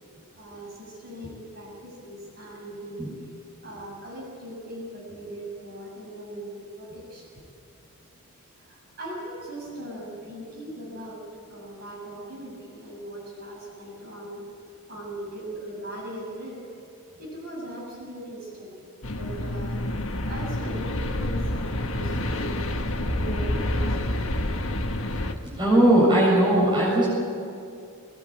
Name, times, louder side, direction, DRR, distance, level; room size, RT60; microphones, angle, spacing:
voice 1, 0.3-3.2 3.6-7.4 8.5-14.5 14.9-16.6 17.2-19.8 20.3-22.7 23.1-24.2, right 1 dB, 45° right, -3 dB, 7.8 m, -39 dB
sound 1, 19.0-25.3, left 1 dB, 65° left, 1.7 m, -28 dB
voice 2, 25.1-27.1, right 1 dB, 20° right, -5 dB, 7.2 m, -20 dB
21.0 x 20.0 x 9.0 m, 2.4 s
head